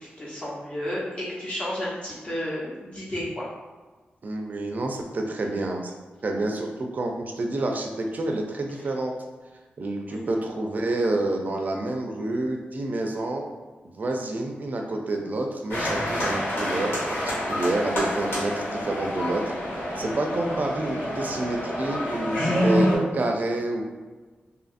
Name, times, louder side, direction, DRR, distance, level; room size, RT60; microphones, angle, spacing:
voice 1, 0.2-3.5 10.1-10.4 22.1-22.7, left 1 dB, 30° left, -7 dB, 0.9 m, -32 dB
voice 2, 4.2-5.9 6.2-9.1 9.8-13.5 13.9-19.5 20.0-23.8, right 2 dB, 50° right, 2 dB, 0.4 m, -28 dB
sound 1, 15.7-23.0, equal, 80° left, 1.3 m, -27 dB
2.6 x 2.5 x 2.5 m, 1.3 s
cardioid pair, 80°, 4 cm